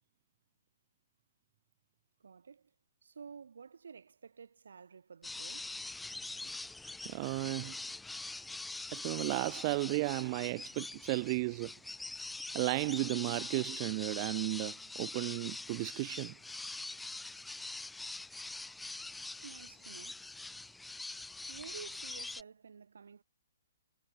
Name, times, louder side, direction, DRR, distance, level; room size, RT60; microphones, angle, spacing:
voice 1, 2.2-2.7 3.0-5.7 19.4-20.2 21.5-23.2, right 6 dB, 75° right, 5.0 m, -51 dB
sound 1, 5.2-22.4, left 2 dB, 5° left, 3.4 m, -43 dB
voice 2, 7.0-7.7 8.9-11.7 12.5-16.3, right 24 dB, 35° right, 1.1 m, -34 dB
hypercardioid pair, 140°, 0 cm